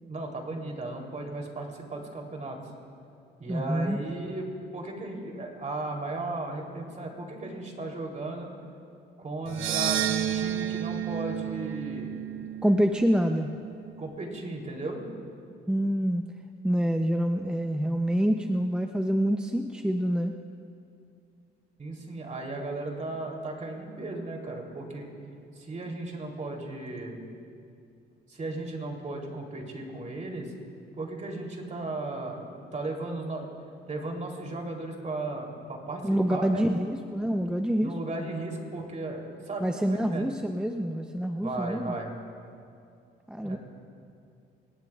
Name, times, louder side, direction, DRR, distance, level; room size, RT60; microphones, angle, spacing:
voice 1, 0.0-2.6 3.4-4.5 4.7-8.5 9.2-12.2 14.0-15.0 21.8-25.1 25.5-27.2 28.3-30.5 31.0-33.5 33.9-36.7 37.8-40.3 41.4-42.1 43.4-43.6, right 2 dB, 35° right, 1 dB, 3.3 m, -36 dB
voice 2, 3.5-4.0 12.6-13.5 15.7-16.2 16.6-20.4 36.0-37.9 39.6-41.9 43.3-43.6, equal, 5° right, 5 dB, 0.6 m, -26 dB
sound 1, 9.5-13.8, right 11 dB, 85° right, 0.8 m, -31 dB
25.0 x 19.0 x 2.4 m, 2.4 s
cardioid pair, 90°, 20 cm